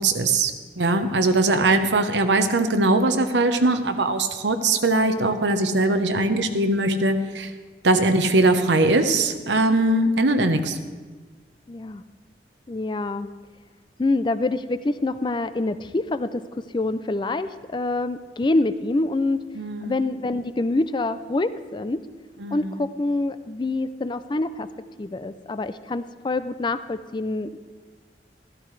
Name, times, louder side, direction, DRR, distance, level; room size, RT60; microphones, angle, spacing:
voice 1, 0.0-7.5 7.8-10.8 19.5-20.0 22.4-22.8, right 2 dB, 90° right, 8 dB, 0.9 m, -21 dB
voice 2, 11.7-12.0 12.7-13.3 14.0-16.4 16.7-19.4 19.8-22.0 22.5-24.7 25.0-27.6, left 2 dB, 25° left, 12 dB, 0.4 m, -26 dB
14.0 x 13.5 x 3.3 m, 1.4 s
head